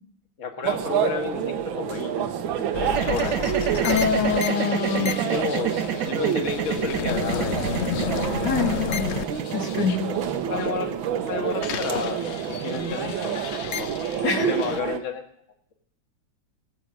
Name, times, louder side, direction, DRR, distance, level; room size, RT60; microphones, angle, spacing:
voice 1, 0.4-3.4 5.2-8.3 8.7-9.0 10.5-12.2 12.5-13.9 14.2-15.2, left 5 dB, 40° left, 6 dB, 1.6 m, -32 dB
sound 1, 0.6-15.0, right 9 dB, 90° right, 1.7 m, -29 dB
sound 2, 2.7-10.7 11.0-14.8, left 7 dB, 85° left, 0.6 m, -32 dB
sound 3, 2.9-13.0, right 9 dB, 70° right, 1.4 m, -29 dB
voice 2, 3.8-5.3 8.4-9.2 9.5-10.1 14.2-14.5, left 5 dB, 65° left, 4 dB, 2.4 m, -25 dB
18.0 x 7.9 x 6.3 m, 0.70 s
omnidirectional pair, 2.1 m